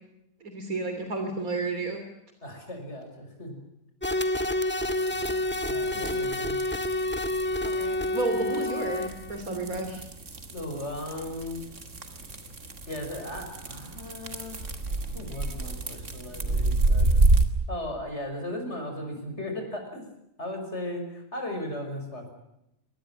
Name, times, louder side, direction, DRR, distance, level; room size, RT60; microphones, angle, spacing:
voice 1, 0.4-2.0 5.9-6.2 7.6-10.0, right 3 dB, 85° right, 5 dB, 3.6 m, -32 dB
voice 2, 2.4-3.5 5.7-6.6 10.5-11.6 12.9-14.7 15.1-17.1 17.7-20.0 20.4-22.3, left 1 dB, 50° left, 4 dB, 6.3 m, -36 dB
sound 1, 4.0-9.4, left 1 dB, 10° left, 1.7 m, -28 dB
sound 2, 4.9-17.4, right 2 dB, 60° right, 2.8 m, -29 dB
25.0 x 19.5 x 8.9 m, 0.83 s
omnidirectional pair, 1.5 m